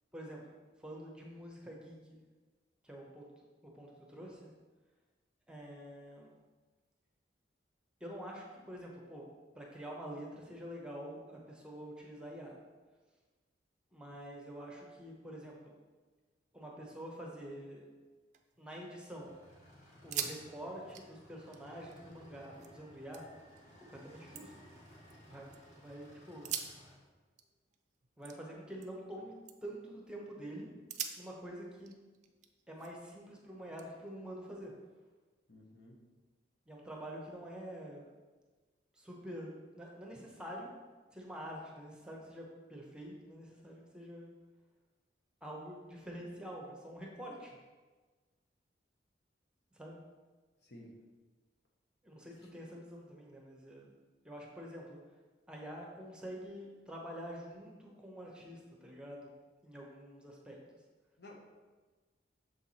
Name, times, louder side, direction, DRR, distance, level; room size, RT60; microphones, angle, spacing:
voice 1, 0.1-2.2 2.8-3.2 3.7-4.5 5.5-6.3 8.0-9.3 9.5-12.6 13.9-15.7 16.5-17.8 18.6-19.3 20.0-23.3 23.9-24.5 25.2-26.5 28.2-29.3 29.6-30.7 31.2-31.9 32.7-34.7 36.7-38.1 38.9-40.7 41.1-42.4 42.7-44.3 45.4-47.6 49.7-50.0 52.0-53.9 54.2-55.0 55.5-59.3 59.6-60.6, equal, 5° right, -1 dB, 0.8 m, -47 dB
sound 1, 18.1-19.1 19.5-19.6 19.9-20.4 20.7-22.7 23.1-23.6 24.1-25.6 26.3-29.1 29.4-29.8 30.3-30.4 30.9-33.1 33.8-34.9, right 8 dB, 40° right, 0.5 m, -45 dB
sound 2, 19.1-27.0, equal, 40° left, 1.6 m, -58 dB
voice 2, 35.5-36.0 50.6-50.9 61.2-61.4, left 1 dB, 60° left, 0 dB, 1.1 m, -53 dB
6.7 x 4.6 x 4.2 m, 1.3 s
head